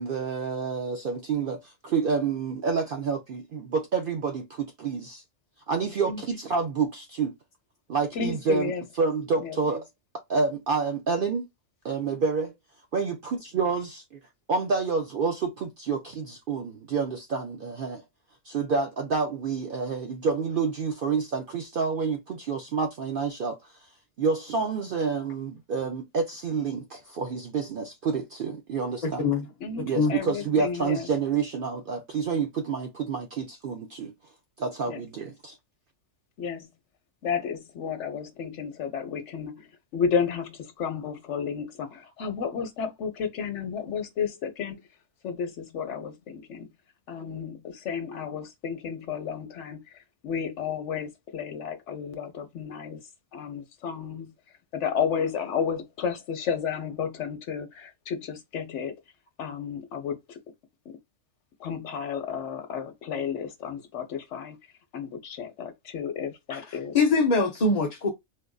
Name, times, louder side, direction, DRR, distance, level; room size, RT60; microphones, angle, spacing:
voice 1, 0.0-5.2 5.7-7.3 7.9-9.8 10.3-11.5 11.8-12.5 12.9-14.2 14.5-18.0 18.4-23.7 24.2-29.3 29.9-34.1 34.6-35.6, right 5 dB, 65° right, 0.5 m, -28 dB
voice 2, 8.1-8.8 9.4-9.6 29.6-31.1 34.9-35.0 36.4-36.7 37.2-39.7 39.9-44.8 45.2-46.7 47.1-49.8 50.2-53.0 53.3-54.3 54.7-59.0 59.4-60.4 61.6-64.6 64.9-66.9, left 6 dB, 60° left, 1.1 m, -32 dB
voice 3, 66.5-68.1, left 3 dB, 40° left, 0.6 m, -23 dB
4.3 x 2.5 x 2.3 m
omnidirectional pair, 1.4 m